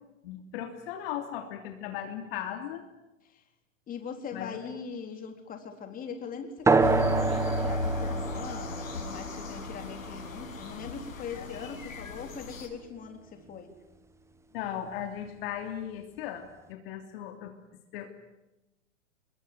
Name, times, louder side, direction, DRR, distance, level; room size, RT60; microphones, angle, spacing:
voice 1, 0.2-2.9 4.3-4.6 11.3-11.4 14.5-17.5 17.9-18.1, left 10 dB, 45° left, 5 dB, 3.1 m, -37 dB
voice 2, 3.9-13.7, left 6 dB, 20° left, 5 dB, 3.9 m, -41 dB
sound 1, 6.7-11.7, right 4 dB, 5° right, 1.4 m, -29 dB
sound 2, 6.8-12.7, left 3 dB, 80° left, 7.9 m, -36 dB
26.0 x 22.5 x 9.5 m, 1.0 s
hypercardioid pair, 125°, 39 cm